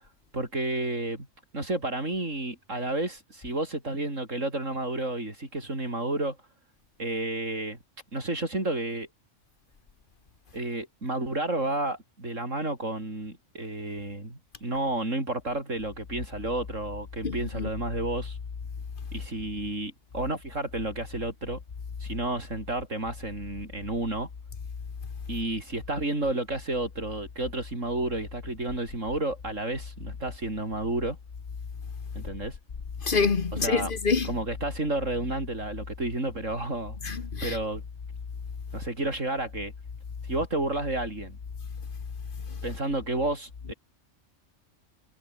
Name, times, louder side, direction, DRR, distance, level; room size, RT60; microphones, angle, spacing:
voice 1, 0.3-1.3 1.5-6.4 7.0-7.8 8.1-9.1 10.5-18.4 19.1-21.6 22.0-24.3 25.3-31.2 32.1-32.6 33.6-33.9 34.3-37.0 37.4-37.8 38.7-39.7 40.2-41.4 42.6-43.7, right 2 dB, 85° right, 6.9 m, -31 dB
voice 2, 17.2-17.7 33.0-34.3 37.0-37.6, left 5 dB, 45° left, 1.3 m, -26 dB
omnidirectional pair, 1.3 m